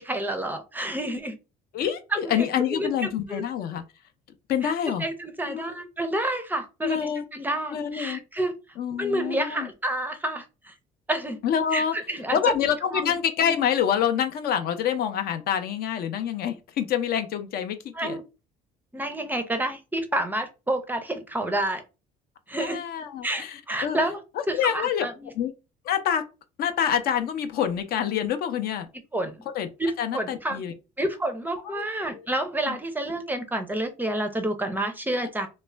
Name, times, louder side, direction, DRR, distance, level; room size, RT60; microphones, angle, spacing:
voice 1, 0.0-1.4 2.1-2.5 2.7-3.4 4.6-4.7 5.0-8.5 9.0-10.7 11.1-11.4 11.7-13.1 17.9-18.2 18.9-21.8 22.5-22.8 23.2-24.2 24.5-25.3 29.1-29.4 29.8-30.6 31.0-35.5, right 1 dB, 10° right, 0.4 m, -29 dB
voice 2, 1.7-3.8 4.5-5.1 5.5-5.7 6.8-7.2 7.7-8.2 8.8-9.7 11.4-11.9 12.3-18.2 22.6-24.0 24.5-25.1 25.4-25.5 25.9-26.2 26.6-28.9 29.5-29.7 30.0-30.7 32.7-32.8 35.2-35.3, left 8 dB, 65° left, 0.5 m, -26 dB
2.3 x 2.1 x 3.2 m
cardioid pair, 110°, 17 cm